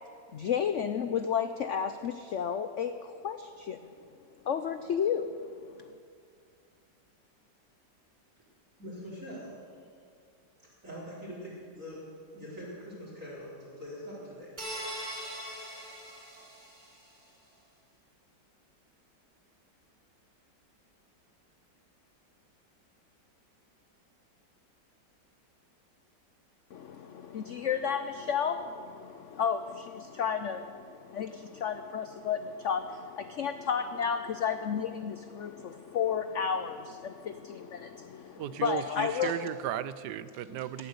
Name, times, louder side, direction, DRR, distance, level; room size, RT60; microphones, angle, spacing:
voice 1, 0.3-3.9 4.4-5.9 26.7-39.5 40.8-40.9, left 7 dB, 75° left, 10 dB, 0.7 m, -32 dB
voice 2, 8.8-9.6 10.8-12.0 12.3-14.5, equal, 45° right, -8 dB, 4.6 m, -43 dB
sound 1, 14.6-17.1, equal, 25° right, 3.4 m, -41 dB
voice 3, 38.4-40.9, right 12 dB, 75° right, 16 dB, 1.1 m, -35 dB
17.5 x 11.5 x 6.8 m, 2.3 s
omnidirectional pair, 2.0 m